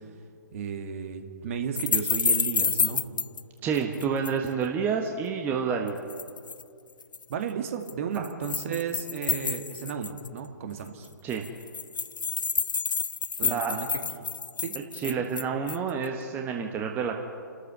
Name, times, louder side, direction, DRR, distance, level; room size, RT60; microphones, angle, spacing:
voice 1, 0.5-3.0 7.3-11.1 13.4-14.4 14.6-14.7 15.1-15.2, right 7 dB, 40° right, 6 dB, 2.0 m, -34 dB
sound 1, 1.8-3.4 3.8-4.5 5.9-6.6 7.0-7.2 7.9-10.4 10.8-10.9 11.0-11.1 11.3-15.9, left 5 dB, 70° left, 0.6 m, -29 dB
voice 2, 3.6-6.0 8.2-8.3 11.2-11.4 13.4-13.8 14.9-17.2, right 6 dB, 15° right, 2 dB, 1.3 m, -29 dB
29.5 x 13.0 x 6.9 m, 2.4 s
figure-of-eight pair, 130°, 11 cm